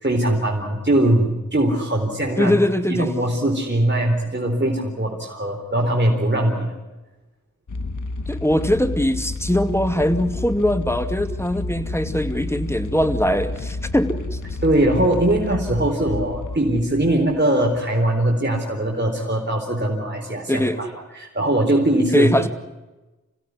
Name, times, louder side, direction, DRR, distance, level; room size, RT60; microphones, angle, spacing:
voice 1, 0.0-2.6 2.9-6.8 14.6-20.9 21.1-22.3, right 1 dB, 35° right, -1 dB, 4.1 m, -21 dB
voice 2, 2.4-3.1 8.3-14.4 20.5-20.8 22.1-22.5, left 1 dB, 10° left, 9 dB, 2.4 m, -21 dB
sound 1, 7.7-17.7, left 2 dB, 80° left, 1.5 m, -30 dB
27.0 x 16.5 x 9.7 m, 1.1 s
wide cardioid pair, 40°, 31 cm